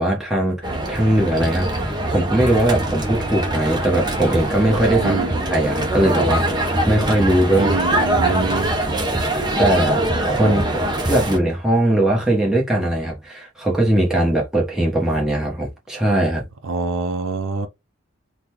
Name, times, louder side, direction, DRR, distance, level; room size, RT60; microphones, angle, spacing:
voice 1, 0.0-5.1 5.5-8.9 9.6-16.5, right 1 dB, 5° right, 1.0 m, -20 dB
sound 1, 0.6-11.4, right 1 dB, 20° right, 0.7 m, -23 dB
sound 2, 1.2-9.5, equal, 65° left, 0.8 m, -38 dB
voice 2, 5.0-5.3 7.6-8.8 10.4-10.6 16.6-17.7, right 4 dB, 70° right, 0.5 m, -25 dB
3.7 x 2.2 x 2.9 m
head